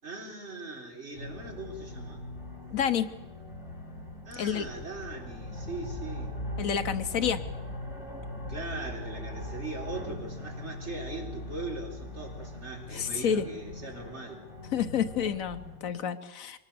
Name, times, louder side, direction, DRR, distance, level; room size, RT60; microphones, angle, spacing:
voice 1, 0.0-2.2 4.2-6.4 8.5-14.4, right 2 dB, 55° right, 0 dB, 4.6 m, -40 dB
sound 1, 1.1-15.8, left 1 dB, 60° left, 5.9 m, -40 dB
voice 2, 2.7-3.1 4.4-4.7 6.6-7.4 12.9-13.5 14.7-16.6, left 8 dB, 90° left, 12 dB, 1.4 m, -29 dB
23.5 x 19.0 x 6.9 m, 1.1 s
omnidirectional pair, 1.4 m